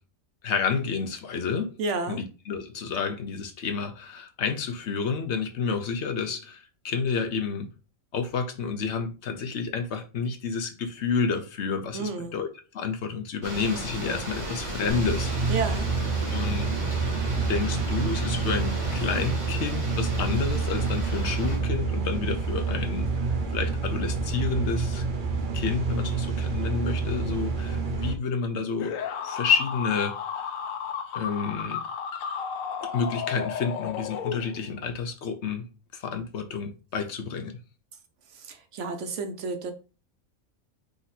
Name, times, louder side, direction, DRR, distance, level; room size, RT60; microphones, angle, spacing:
voice 1, 0.4-1.7 2.1-7.7 8.1-12.5 12.7-15.5 16.3-16.8 17.5-23.1 23.5-25.0 25.5-28.9 29.2-30.5 31.1-31.8 32.8-35.7 35.9-37.6, left 5 dB, 60° left, 1.0 m, -30 dB
voice 2, 1.8-2.2 11.9-12.3 15.5-15.9 38.3-39.7, right 4 dB, 65° right, 1.1 m, -31 dB
sound 1, 13.4-21.6, right 1 dB, 25° right, 1.5 m, -35 dB
sound 2, 14.9-28.1, right 4 dB, 45° right, 0.9 m, -28 dB
sound 3, 28.8-34.8, left 7 dB, 85° left, 1.0 m, -33 dB
3.9 x 3.0 x 4.1 m
omnidirectional pair, 1.4 m